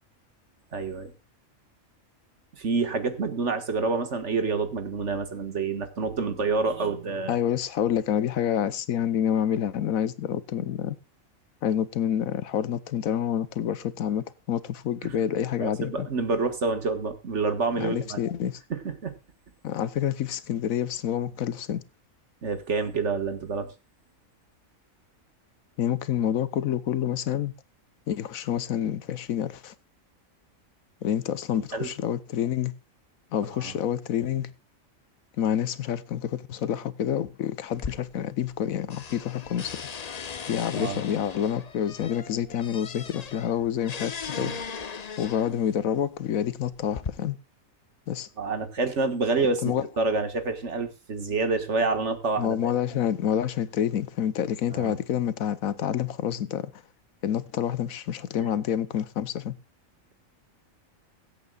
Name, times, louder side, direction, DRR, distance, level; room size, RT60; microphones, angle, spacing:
voice 1, 0.7-1.1 2.6-7.4 15.0-15.2 15.6-18.2 18.7-19.1 22.4-23.7 31.5-31.9 33.5-33.7 40.7-41.0 44.4-44.6 48.4-52.6 54.7-55.0 58.4-58.5, right 4 dB, 60° right, 1.9 m, -28 dB
voice 2, 7.3-11.0 11.6-16.1 17.8-18.6 19.6-21.8 25.8-27.5 28.1-29.7 31.0-32.7 33.3-34.5 35.4-39.8 40.5-44.6 45.2-47.4 48.1-48.3 49.6-49.9 52.4-56.7 57.2-59.6, left 9 dB, 85° left, 1.3 m, -28 dB
sound 1, 37.7-38.6 38.9-45.7 46.5-47.1, left 6 dB, 40° left, 0.6 m, -38 dB
23.0 x 8.2 x 2.3 m
omnidirectional pair, 1.4 m